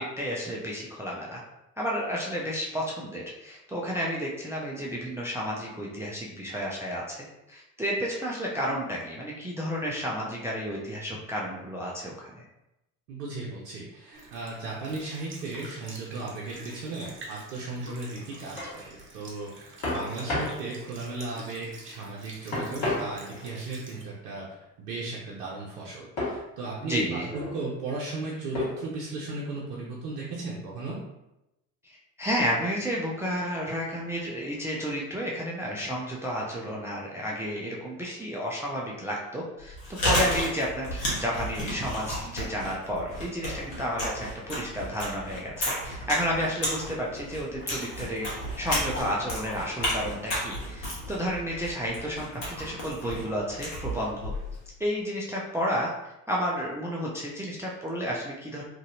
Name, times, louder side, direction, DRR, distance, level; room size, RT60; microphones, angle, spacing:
voice 1, 0.0-1.4 1.8-12.4 26.8-27.3 31.8-39.8 40.0-45.5 45.8-48.3 48.6-54.3 54.8-58.6, equal, 5° right, -4 dB, 0.4 m, -31 dB
voice 2, 13.1-24.4 24.8-27.2 27.5-31.0, right 3 dB, 75° right, -5 dB, 0.7 m, -36 dB
Sink (filling or washing) / Liquid, 14.1-24.0, right 2 dB, 25° right, 0.9 m, -48 dB
sound 1, 18.2-18.8 19.8-20.6 22.5-23.5 26.2-26.4 27.1-27.6 28.5-29.0, left 2 dB, 50° left, 1.5 m, -32 dB
Chewing mastication, 39.6-54.7, equal, 65° left, 1.4 m, -32 dB
3.0 x 2.6 x 2.6 m, 0.91 s
hypercardioid pair, 60°, 47 cm